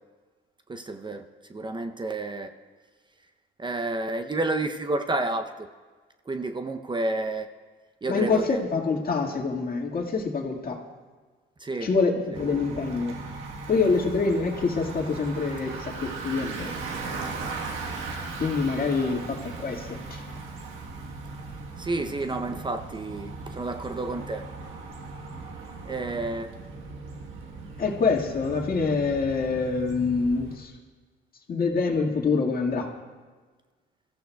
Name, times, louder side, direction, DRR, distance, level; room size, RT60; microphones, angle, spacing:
voice 1, 0.7-2.5 3.6-5.7 6.3-7.5 8.0-8.6 11.6-11.9 21.8-24.4 25.9-26.5, right 2 dB, 25° right, 0.6 m, -30 dB
voice 2, 8.1-10.8 11.8-13.2 13.7-16.7 18.4-20.2 27.8-30.7 31.5-32.9, left 4 dB, 45° left, 1.9 m, -26 dB
Bicycle, 12.3-30.6, right 3 dB, 90° right, 1.3 m, -38 dB
23.0 x 14.5 x 2.3 m
cardioid pair, 90°, 20 cm